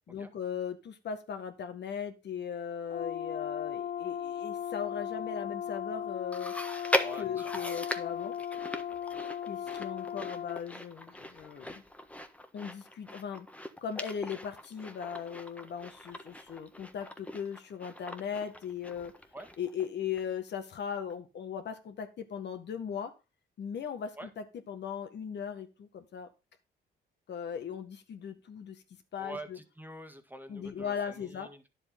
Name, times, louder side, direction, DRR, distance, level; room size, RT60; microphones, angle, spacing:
voice 1, 0.1-6.5 7.2-8.4 9.5-11.8 12.5-13.5 13.8-19.1 19.6-23.1 23.6-26.3 27.3-28.8 29.1-29.6 30.5-31.5, left 7 dB, 60° left, 7 dB, 1.8 m, -38 dB
Brass instrument, 2.9-10.6, left 9 dB, 45° left, 0.6 m, -37 dB
Chewing mastication, 6.3-19.9 20.2-20.3 21.1-21.2, left 1 dB, 5° left, 1.4 m, -39 dB
voice 2, 7.0-7.4 19.3-19.5 24.2-24.3 29.2-31.7, right 1 dB, 10° right, 7 dB, 1.7 m, -46 dB
10.0 x 7.6 x 3.8 m, 0.28 s
cardioid pair, 90°, 20 cm